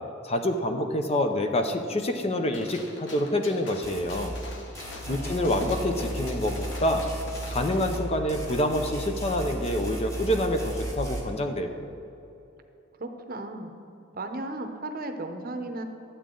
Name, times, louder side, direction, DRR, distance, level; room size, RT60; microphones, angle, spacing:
voice 1, 0.2-4.4 5.1-7.1 7.5-11.8, left 1 dB, 30° left, 6 dB, 0.6 m, -27 dB
Gunshot gunfire, 2.5-8.0, left 2 dB, 65° left, 1.2 m, -44 dB
sound 1, 3.8-4.3 4.7-8.0 8.3-11.2, right 1 dB, 15° left, 1.4 m, -35 dB
voice 2, 5.0-5.8 13.0-13.7 14.1-15.8, right 2 dB, 50° right, 6 dB, 0.8 m, -36 dB
12.5 x 8.3 x 3.8 m, 2.9 s
head